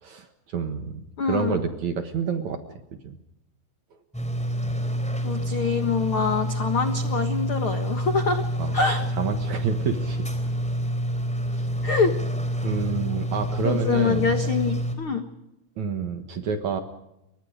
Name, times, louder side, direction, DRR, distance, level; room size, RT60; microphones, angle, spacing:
voice 1, 0.0-3.2 8.6-8.7 9.2-10.3 12.6-14.3 15.8-16.8, right 5 dB, 60° right, 7 dB, 2.2 m, -29 dB
voice 2, 1.2-1.6 5.2-8.4 8.7-9.0 11.8-12.1 13.6-15.2, left 5 dB, 60° left, 7 dB, 1.3 m, -25 dB
sound 1, 4.1-14.9, equal, ahead, 3.0 m, -28 dB
29.0 x 24.0 x 5.1 m, 0.86 s
omnidirectional pair, 4.8 m